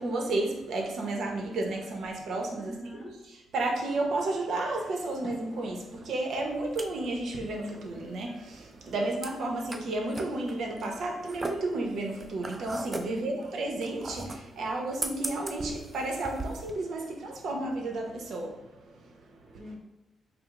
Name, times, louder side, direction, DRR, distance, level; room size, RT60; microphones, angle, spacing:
voice 1, 0.0-2.7 3.5-19.6, right 2 dB, 65° right, 2 dB, 0.8 m, -32 dB
voice 2, 2.6-3.2 13.0-13.5 19.6-19.8, equal, 10° left, -3 dB, 0.9 m, -44 dB
sound 1, 6.3-16.7, right 2 dB, 25° right, 0.4 m, -40 dB
4.8 x 2.0 x 3.6 m, 1.0 s
cardioid pair, 125°, 0 cm